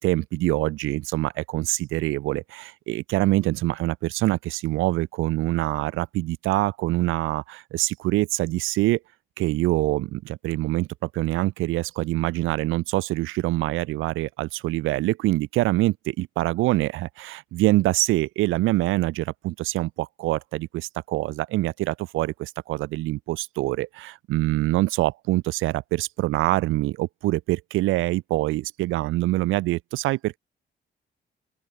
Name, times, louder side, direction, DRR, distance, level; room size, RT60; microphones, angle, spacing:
voice 1, 0.0-9.0 9.4-10.9 11.1-30.4, right 18 dB, 90° right, 0.6 m, -25 dB
open air
cardioid pair, 90°, 20 cm